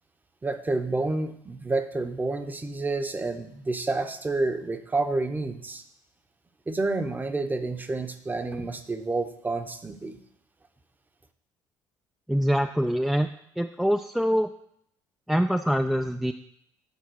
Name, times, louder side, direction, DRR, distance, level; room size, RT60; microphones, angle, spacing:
voice 1, 0.4-5.8 6.7-10.2, right 3 dB, 20° right, 8 dB, 0.8 m, -29 dB
voice 2, 12.3-13.3 13.6-14.5 15.3-16.3, equal, 5° right, 6 dB, 0.3 m, -24 dB
8.2 x 3.6 x 6.3 m, 0.72 s
supercardioid pair, 75°, 8 cm